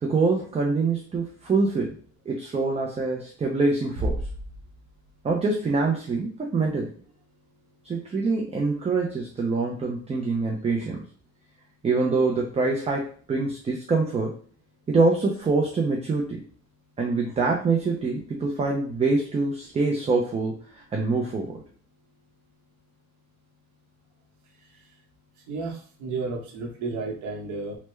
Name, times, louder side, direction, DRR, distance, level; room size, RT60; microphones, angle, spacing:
voice 1, 0.0-2.0 2.3-4.2 5.2-6.9 7.8-11.0 11.8-14.3 14.9-16.4 17.0-21.6, right 3 dB, 20° right, 0 dB, 0.5 m, -25 dB
Bass drum, 4.0-5.4, right 1 dB, 50° right, 0.9 m, -32 dB
voice 2, 25.5-27.8, right 3 dB, 85° right, 1 dB, 0.9 m, -32 dB
3.3 x 2.1 x 3.1 m, 0.43 s
cardioid pair, 120°, 30 cm